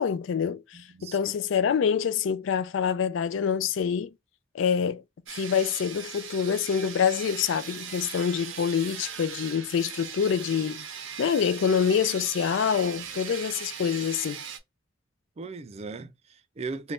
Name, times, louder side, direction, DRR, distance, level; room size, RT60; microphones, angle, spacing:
voice 1, 0.0-4.1 4.5-5.0 5.3-10.9 11.2-14.4, left 7 dB, 75° left, 0.4 m, -26 dB
voice 2, 0.7-1.2 15.4-16.9, right 3 dB, 35° right, 0.4 m, -38 dB
sound 1, 5.3-14.6, right 8 dB, 90° right, 0.6 m, -39 dB
2.6 x 2.2 x 3.3 m
head